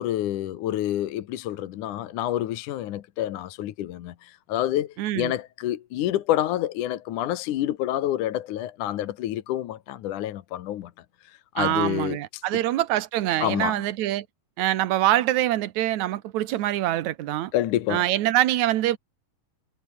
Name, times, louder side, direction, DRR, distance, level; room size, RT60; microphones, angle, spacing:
voice 1, 0.0-10.9 11.3-12.4 13.4-13.8 17.5-18.0, left 12 dB, 70° left, 2.4 m, -28 dB
voice 2, 5.0-5.3 11.6-14.3 14.6-17.5 17.9-19.0, right 14 dB, 65° right, 2.1 m, -24 dB
omnidirectional pair, 4.1 m